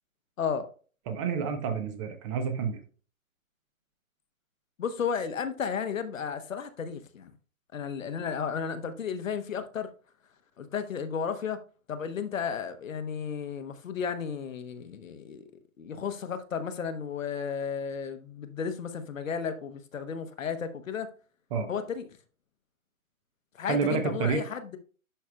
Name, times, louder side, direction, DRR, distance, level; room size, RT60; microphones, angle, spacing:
voice 1, 0.4-0.7 4.8-7.3 7.7-9.9 10.6-11.6 11.9-15.5 15.8-21.1 21.7-22.1 23.5-24.8, left 6 dB, 65° left, 1.1 m, -33 dB
voice 2, 1.1-2.8 21.5-21.7 23.7-24.4, right 6 dB, 20° right, 0.7 m, -29 dB
11.0 x 4.6 x 2.2 m
figure-of-eight pair, 130°, 43 cm